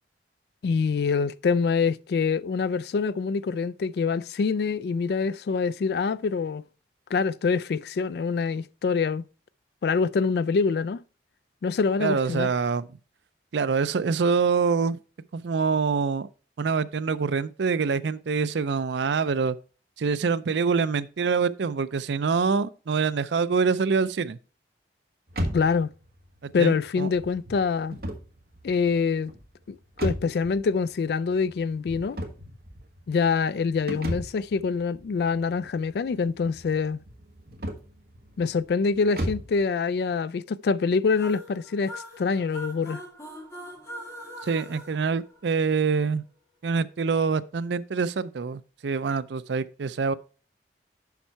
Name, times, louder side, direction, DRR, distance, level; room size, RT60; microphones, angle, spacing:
voice 1, 0.6-6.6 7.1-9.2 9.8-11.0 11.6-12.5 25.5-25.9 26.5-28.0 28.6-29.3 29.7-32.2 33.1-37.0 38.4-43.0, left 5 dB, 60° left, 0.3 m, -25 dB
voice 2, 12.0-12.9 13.5-15.0 15.3-16.3 16.6-19.6 20.0-24.4 26.4-27.1 44.4-46.2 46.6-50.1, right 5 dB, 75° right, 0.5 m, -25 dB
sound 1, 25.3-39.6, equal, 55° right, 1.3 m, -37 dB
sound 2, 41.1-45.9, equal, 15° left, 2.0 m, -42 dB
7.1 x 5.6 x 4.5 m
head